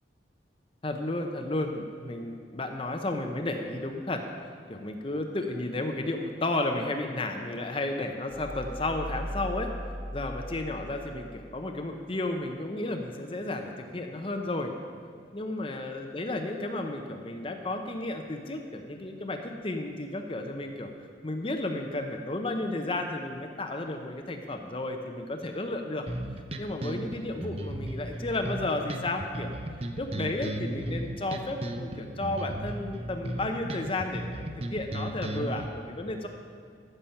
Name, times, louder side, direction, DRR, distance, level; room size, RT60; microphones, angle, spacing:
voice 1, 0.8-4.2 4.7-9.7 10.1-14.7 15.3-20.9 21.2-26.1 26.6-29.6 30.0-36.3, left 2 dB, 30° left, 4 dB, 0.7 m, -33 dB
sound 1, 8.3-12.0, equal, 15° left, 1.4 m, -39 dB
sound 2, 26.1-35.7, right 1 dB, 35° right, 0.7 m, -35 dB
14.5 x 6.9 x 5.7 m, 2.3 s
head